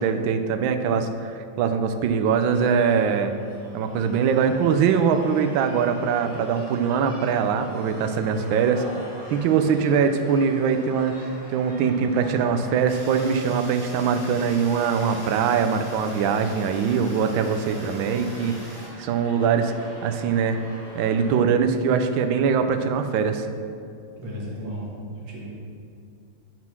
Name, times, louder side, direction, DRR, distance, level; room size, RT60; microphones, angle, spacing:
voice 1, 0.0-3.3 3.7-8.8 9.3-20.6 20.9-23.5, right 6 dB, 75° right, 8 dB, 1.2 m, -22 dB
sound 1, 2.4-21.4, left 1 dB, 45° left, 2.8 m, -44 dB
voice 2, 8.2-8.9 9.4-10.0 17.7-18.2 24.2-25.5, equal, 60° right, -4 dB, 2.2 m, -37 dB
Fire, 12.9-18.9, equal, 10° left, 1.4 m, -43 dB
9.7 x 3.8 x 5.9 m, 2.4 s
omnidirectional pair, 2.4 m